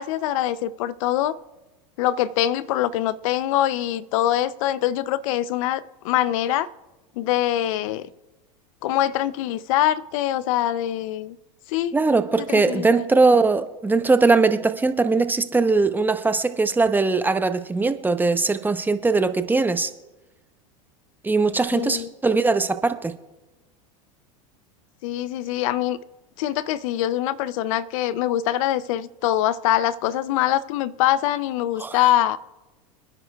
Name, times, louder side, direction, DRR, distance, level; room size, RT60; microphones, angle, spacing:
voice 1, 0.0-1.4 2.0-6.7 7.2-8.1 8.8-11.4 11.7-11.9 12.4-13.0 21.7-22.1 25.0-26.0 26.4-32.4, left 13 dB, 70° left, 17 dB, 0.6 m, -24 dB
voice 2, 11.9-19.9 21.2-23.1 31.8-32.0, right 3 dB, 10° right, 10 dB, 0.8 m, -20 dB
26.0 x 9.9 x 2.3 m, 1.1 s
hypercardioid pair, 105°, 18 cm